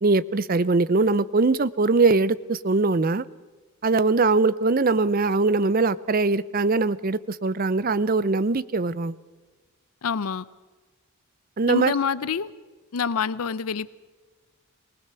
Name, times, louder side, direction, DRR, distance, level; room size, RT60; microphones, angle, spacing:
voice 1, 0.0-3.2 3.8-9.2 11.6-11.9, right 3 dB, 40° right, 17 dB, 0.5 m, -21 dB
voice 2, 10.0-10.4 11.7-12.5 12.9-13.9, left 6 dB, 80° left, 17 dB, 0.6 m, -26 dB
20.5 x 19.5 x 6.9 m, 1.3 s
head